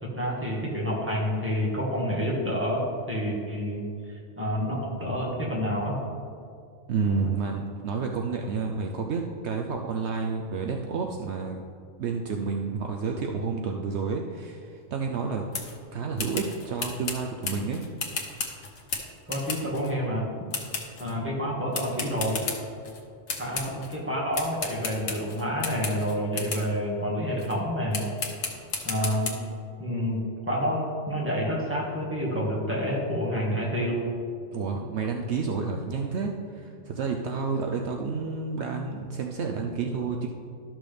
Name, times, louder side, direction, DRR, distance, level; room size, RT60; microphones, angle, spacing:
voice 1, 0.0-6.0 19.3-20.3 21.0-22.4 23.4-28.1 28.8-29.4 29.8-34.1, equal, 10° right, -4 dB, 1.6 m, -28 dB
voice 2, 6.9-11.7 12.0-15.4 15.9-17.8 34.5-40.3, right 5 dB, 70° right, 2 dB, 0.9 m, -30 dB
sound 1, 15.5-15.8 16.2-19.9 20.5-21.1 21.7-23.0 23.3-24.0 24.3-26.7 27.4-27.6 27.9-29.3, left 4 dB, 85° left, 1.4 m, -34 dB
12.5 x 6.2 x 3.4 m, 2.3 s
omnidirectional pair, 1.3 m